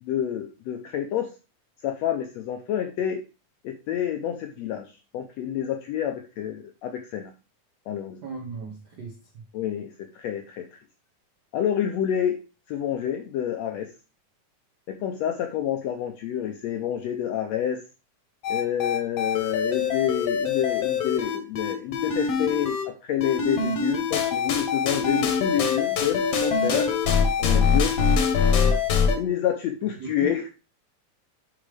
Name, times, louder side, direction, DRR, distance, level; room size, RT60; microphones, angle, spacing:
voice 1, 0.0-1.3 1.8-3.2 3.6-4.9 5.1-7.3 7.9-8.2 9.5-10.7 11.5-12.4 12.7-13.9 14.9-17.8 18.5-26.9 27.4-28.0 29.2-30.5, left 9 dB, 85° left, 5 dB, 1.5 m, -28 dB
voice 2, 8.2-9.4 27.7-27.8 30.0-30.3, right 3 dB, 90° right, -1 dB, 0.9 m, -38 dB
sound 1, 18.4-22.8 23.2-29.2, left 6 dB, 65° left, 1.7 m, -24 dB
9.8 x 3.7 x 3.3 m, 0.31 s
omnidirectional pair, 3.7 m